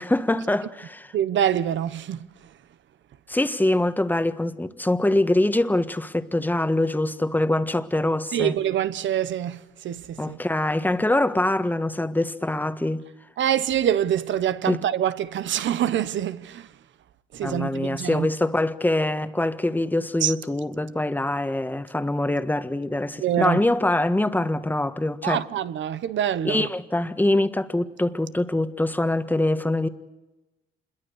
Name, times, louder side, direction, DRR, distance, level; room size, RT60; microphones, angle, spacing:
voice 1, 0.0-1.1 3.3-8.6 10.2-13.0 14.7-14.8 17.4-25.4 26.4-29.9, left 1 dB, 10° left, 1.5 m, -24 dB
voice 2, 1.1-2.2 8.3-10.4 13.4-16.7 17.3-18.3 20.2-20.3 23.2-23.6 25.2-26.7, right 10 dB, 70° right, 1.2 m, -25 dB
27.0 x 22.0 x 6.6 m
cardioid pair, 90°, 20 cm